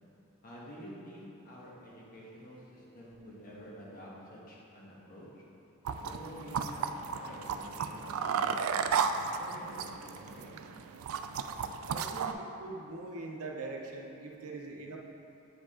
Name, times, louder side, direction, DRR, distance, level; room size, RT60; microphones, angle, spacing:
voice 1, 0.4-5.4 6.0-6.8 7.1-8.8 9.4-10.6, equal, 40° left, -5 dB, 1.3 m, -49 dB
sound 1, 5.8-12.3, right 6 dB, 70° right, 0.3 m, -34 dB
voice 2, 11.8-15.0, right 3 dB, 85° right, 0 dB, 0.7 m, -42 dB
8.1 x 4.9 x 3.7 m, 2.8 s
head